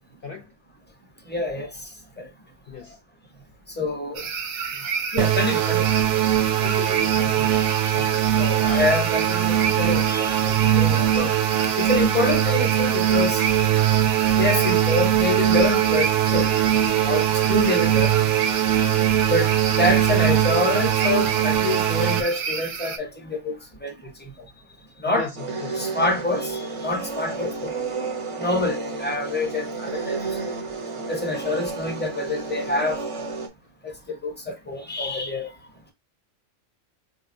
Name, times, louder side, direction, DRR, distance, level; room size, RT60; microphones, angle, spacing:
voice 1, 1.3-1.7 3.8-4.2 5.1-5.9 8.4-11.3 11.8-13.5 14.4-16.7 17.1-18.1 19.3-24.0 25.0-25.3 25.8-27.7 28.4-30.5 31.1-33.0 33.8-35.5, left 2 dB, 10° left, 0.6 m, -26 dB
voice 2, 2.7-3.0 4.2-4.3 6.6-7.6 7.8-8.5 25.0-25.9, left 6 dB, 60° left, 0.6 m, -38 dB
sound 1, 4.1-23.0, right 5 dB, 90° right, 1.1 m, -30 dB
sound 2, 5.2-22.2, right 11 dB, 70° right, 0.9 m, -21 dB
sound 3, 25.4-33.5, right 4 dB, 40° right, 0.5 m, -31 dB
4.0 x 2.8 x 2.5 m
omnidirectional pair, 1.3 m